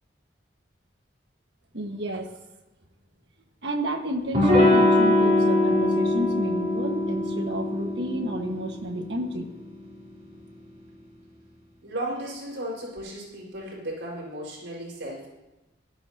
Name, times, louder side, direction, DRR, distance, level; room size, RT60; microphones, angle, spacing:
voice 1, 1.7-2.3 3.6-9.5, right 1 dB, 65° right, 3 dB, 1.7 m, -31 dB
Electric guitar / Strum, 4.3-9.7, left 1 dB, 40° right, 4.2 m, -22 dB
voice 2, 11.8-15.3, right 1 dB, 85° right, -3 dB, 5.2 m, -35 dB
17.0 x 12.5 x 2.9 m, 1.1 s
head